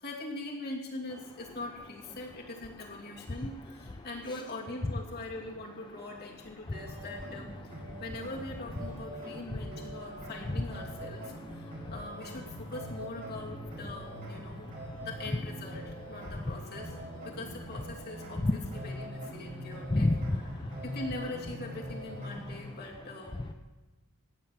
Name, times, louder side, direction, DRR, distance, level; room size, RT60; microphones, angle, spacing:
voice 1, 0.0-14.7 15.0-17.0 17.2-20.1 20.8-23.4, left 2 dB, 50° left, -2 dB, 2.8 m, -42 dB
sound 1, 6.7-22.7, equal, 45° right, 5.6 m, -43 dB
voice 2, 11.6-11.9 18.4-18.5 19.9-20.8 23.4-23.5, left 2 dB, 20° left, 6 dB, 0.5 m, -29 dB
17.5 x 7.0 x 7.4 m, 1.2 s
head